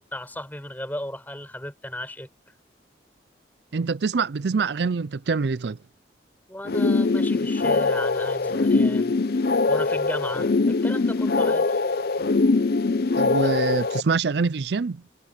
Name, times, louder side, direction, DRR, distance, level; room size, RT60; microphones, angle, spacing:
voice 1, 0.0-2.3 6.5-9.1 9.7-11.8 13.4-13.5, left 1 dB, 10° left, 5.2 m, -35 dB
voice 2, 3.7-5.8 13.2-15.0, right 4 dB, 65° right, 0.5 m, -25 dB
sound 1, 6.6-14.0, left 3 dB, 55° left, 0.5 m, -22 dB
head